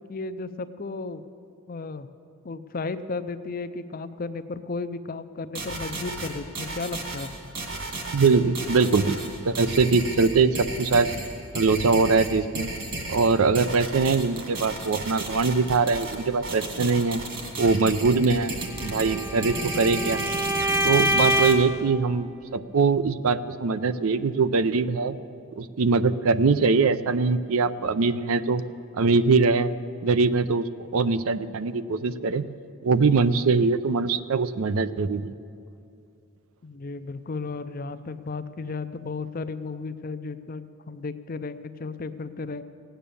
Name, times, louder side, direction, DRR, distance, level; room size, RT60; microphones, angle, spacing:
voice 1, 0.1-1.2 1.7-2.1 2.4-7.3 36.6-42.6, left 3 dB, 40° left, 12 dB, 0.5 m, -34 dB
sound 1, 5.5-21.5, right 2 dB, 55° right, 2.1 m, -33 dB
voice 2, 8.1-9.2 9.4-11.1 11.5-12.7 13.1-17.2 17.6-20.2 20.8-25.2 25.6-28.6 28.9-29.7 30.0-32.5 32.8-35.3, right 4 dB, 75° right, 13 dB, 0.5 m, -22 dB
Bowed string instrument, 18.8-21.8, equal, 15° right, 0.8 m, -25 dB
17.0 x 9.0 x 6.9 m, 2.6 s
head